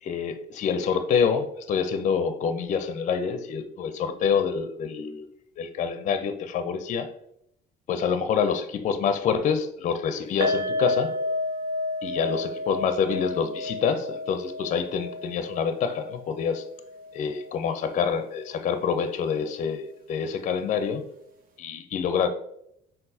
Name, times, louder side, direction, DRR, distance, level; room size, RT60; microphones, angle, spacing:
voice 1, 0.0-5.3 5.6-7.1 7.9-11.1 12.0-16.6 17.1-21.0 21.6-22.3, left 6 dB, 45° left, 9 dB, 0.4 m, -26 dB
sound 1, 10.4-17.6 17.9-18.1 18.4-18.5, left 2 dB, 55° right, 0.7 m, -31 dB
4.5 x 3.7 x 2.7 m, 0.76 s
cardioid pair, 110°, 17 cm